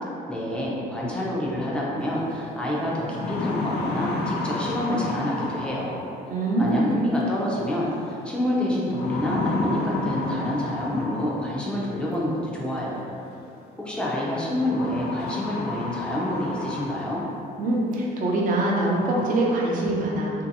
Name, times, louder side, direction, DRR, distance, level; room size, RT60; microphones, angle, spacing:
voice 1, 0.3-6.1 6.6-13.2 13.8-17.2, left 1 dB, 5° left, -6 dB, 0.6 m, -28 dB
sound 1, 2.3-2.4 2.9-6.3 7.7-8.1 8.9-11.7 13.0-13.1 14.6-17.4 17.9-18.0 18.6-18.7 18.9-19.5, left 2 dB, 70° left, 0.4 m, -31 dB
voice 2, 6.3-6.9 17.6-20.3, right 2 dB, 55° right, -3 dB, 0.6 m, -23 dB
3.0 x 2.7 x 2.7 m, 2.7 s
cardioid pair, 110°, 17 cm